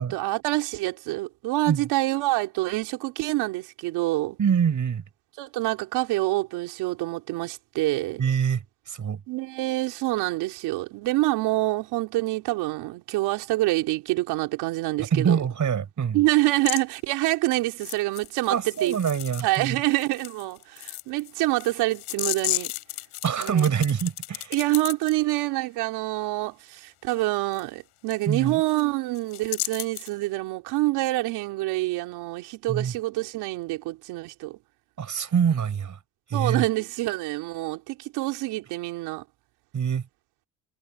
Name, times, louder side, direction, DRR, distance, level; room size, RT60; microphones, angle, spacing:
voice 1, 0.0-4.4 5.4-8.2 9.3-15.4 16.1-19.0 19.4-22.7 23.4-23.7 24.5-34.6 36.3-39.2, right 19 dB, 85° right, 3.6 m, -26 dB
voice 2, 4.4-5.0 8.2-9.2 15.0-16.2 18.5-19.8 23.2-24.5 28.2-28.6 32.7-32.9 35.0-36.0 36.3-36.6 39.7-40.0, right 7 dB, 50° right, 6.1 m, -25 dB
sound 1, 16.5-16.8 17.8-19.7 20.0-25.1 27.5-27.6 28.1-28.2 28.5-28.8 29.2-30.1, left 19 dB, 80° left, 4.0 m, -34 dB
supercardioid pair, 65°, 38 cm